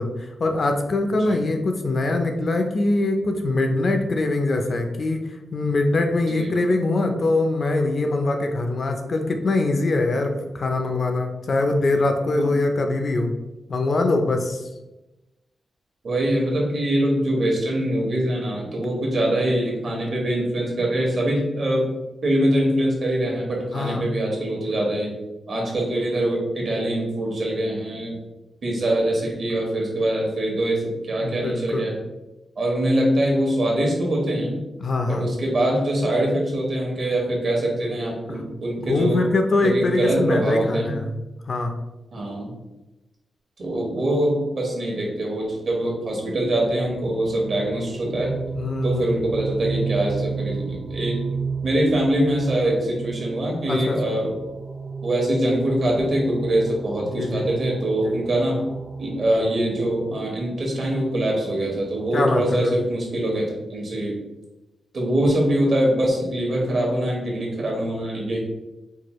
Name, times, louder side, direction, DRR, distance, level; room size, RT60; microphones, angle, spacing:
voice 1, 0.0-13.3 13.7-14.7 23.7-24.1 31.2-31.9 34.8-35.3 38.3-38.4 38.8-41.1 41.5-41.8 48.0-48.2 48.5-49.1 53.7-54.2 57.1-57.5 58.0-58.2 62.1-62.8, left 2 dB, 45° left, 4 dB, 0.4 m, -23 dB
voice 2, 16.0-21.8 22.2-25.1 25.5-28.1 28.6-31.9 32.6-34.6 35.1-39.2 39.6-41.0 42.1-42.5 43.6-48.3 48.8-51.2 51.6-54.3 55.0-58.6 59.0-64.2 64.9-68.4, right 1 dB, 55° right, -1 dB, 1.1 m, -23 dB
sound 1, 46.2-60.9, right 4 dB, 25° right, 0.6 m, -33 dB
4.5 x 2.3 x 3.0 m, 1.0 s
wide cardioid pair, 140°, 0 cm